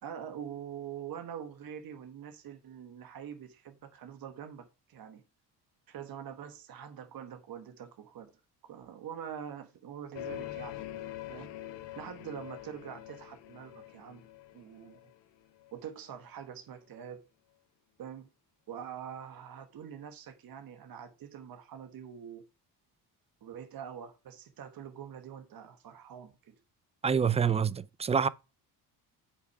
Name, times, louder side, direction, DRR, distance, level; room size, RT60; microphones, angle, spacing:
voice 1, 0.0-5.2 5.9-8.3 8.6-10.8 11.3-11.5 12.0-14.3 14.5-15.0 15.7-17.2 18.0-18.3 18.7-22.5 23.4-26.6, right 8 dB, 55° right, 1.4 m, -44 dB
sound 1, 10.1-15.8, left 13 dB, 75° left, 1.1 m, -44 dB
voice 2, 27.0-28.3, right 7 dB, 15° right, 0.4 m, -26 dB
8.0 x 5.9 x 4.7 m
cardioid pair, 105°, 42 cm